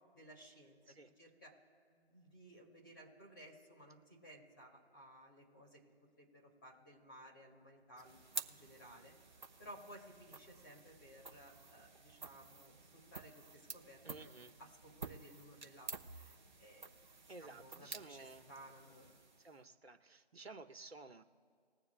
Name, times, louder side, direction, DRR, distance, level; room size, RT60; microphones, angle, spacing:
voice 1, 0.0-0.8 1.2-1.6 1.9-5.8 6.2-9.1 9.6-14.3 14.6-16.9 17.4-19.1, right 1 dB, 20° left, -5 dB, 2.5 m, -58 dB
sound 1, 8.0-19.7, right 3 dB, 45° right, 1.1 m, -51 dB
voice 2, 14.0-14.6 17.3-18.5 19.4-21.2, right 3 dB, 75° right, 6 dB, 1.4 m, -54 dB
21.0 x 7.3 x 2.3 m, 2.1 s
figure-of-eight pair, 170°, 32 cm